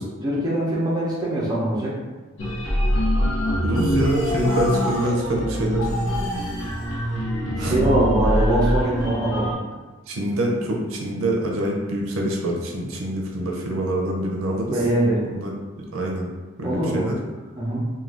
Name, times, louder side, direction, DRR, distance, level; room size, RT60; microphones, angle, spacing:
voice 1, 0.2-1.9 7.6-9.6 14.7-15.2 16.6-17.0 17.6-17.8, right 1 dB, 20° right, -6 dB, 0.6 m, -22 dB
sound 1, 2.4-9.5, equal, 85° left, 0.6 m, -24 dB
voice 2, 3.6-5.9 7.6-7.8 10.1-14.7 15.3-16.3 16.6-17.2, right 1 dB, 85° right, 0 dB, 0.5 m, -25 dB
2.5 x 2.2 x 3.3 m, 1.2 s
head